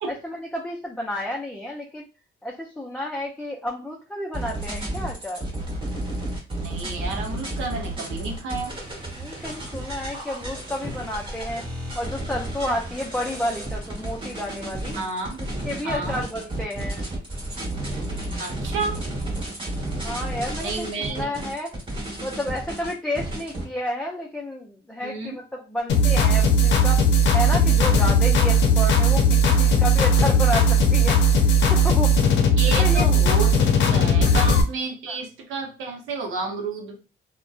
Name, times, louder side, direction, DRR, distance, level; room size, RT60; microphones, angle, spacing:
voice 1, 0.1-2.1 2.4-5.5 9.1-11.6 11.9-15.0 15.6-17.1 20.0-21.7 22.2-27.0 27.3-31.2 31.7-32.1 32.8-33.1 34.2-34.3 35.1-35.2, left 1 dB, 5° left, -2 dB, 0.4 m, -31 dB
sound 1, 4.3-23.6, right 1 dB, 25° right, 1.0 m, -32 dB
voice 2, 6.6-8.7 15.0-15.4 15.8-16.2 18.4-19.0 20.6-21.4 25.0-25.4 32.6-36.9, right 3 dB, 85° right, 1 dB, 0.7 m, -31 dB
sound 2, 25.9-34.6, equal, 65° left, 0.5 m, -18 dB
2.6 x 2.1 x 2.3 m, 0.33 s
cardioid pair, 90°, 20 cm